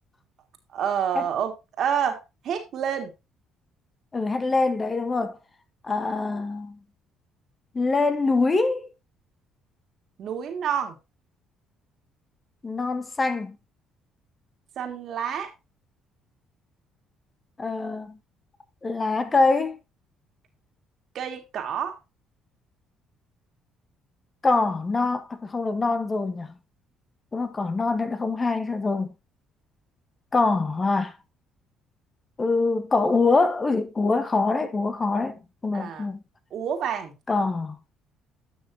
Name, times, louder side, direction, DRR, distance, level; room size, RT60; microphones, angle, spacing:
voice 1, 0.7-3.1 10.2-11.0 14.8-15.5 21.1-22.0 35.7-36.1 36.5-37.1, right 8 dB, 60° right, 2.4 m, -28 dB
voice 2, 4.1-5.4 5.8-6.8 7.7-8.9 12.6-13.6 17.6-18.2 18.8-19.8 24.4-26.5 27.3-29.1 30.3-31.1 32.4-36.2 37.3-37.8, left 3 dB, 30° left, 1.4 m, -24 dB
11.0 x 6.2 x 2.9 m
supercardioid pair, 75°, 0 cm